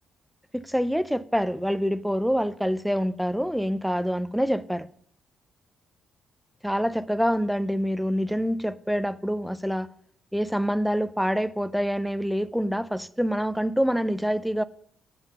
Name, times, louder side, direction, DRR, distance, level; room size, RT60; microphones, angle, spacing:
voice 1, 0.5-4.9 6.6-9.9 10.3-14.6, equal, ahead, 0.4 m, -26 dB
8.1 x 5.5 x 6.6 m
cardioid pair, 150°, 0 cm